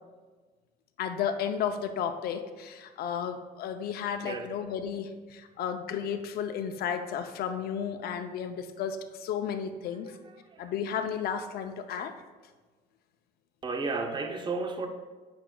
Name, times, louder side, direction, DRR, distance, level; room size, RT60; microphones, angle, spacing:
voice 1, 1.0-10.1 10.6-12.1, left 7 dB, 65° left, 7 dB, 0.6 m, -33 dB
voice 2, 4.2-4.5 10.1-10.7 13.6-14.9, right 3 dB, 25° right, 5 dB, 0.7 m, -34 dB
8.4 x 6.0 x 2.3 m, 1.3 s
cardioid pair, 110°, 17 cm